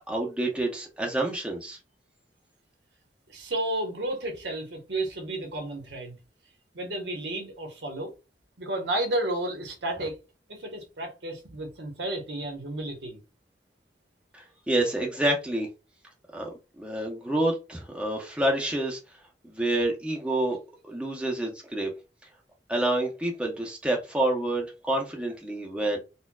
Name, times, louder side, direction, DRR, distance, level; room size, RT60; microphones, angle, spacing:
voice 1, 0.1-1.8 14.3-15.7 16.3-19.0 19.4-20.6 20.8-21.9 22.7-26.0, right 1 dB, 5° right, 0.6 m, -28 dB
voice 2, 3.3-6.2 6.7-8.1 8.6-10.2 10.5-13.2, right 1 dB, 70° right, 1.1 m, -32 dB
4.3 x 2.2 x 2.3 m
head